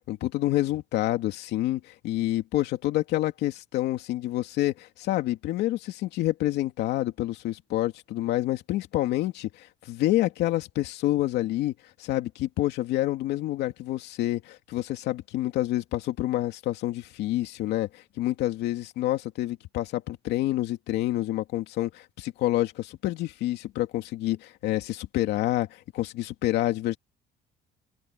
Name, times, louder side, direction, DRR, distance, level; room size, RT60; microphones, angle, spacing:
voice 1, 0.1-11.7 12.0-27.0, left 15 dB, 85° left, 2.6 m, -28 dB
cardioid pair, 110°, 17 cm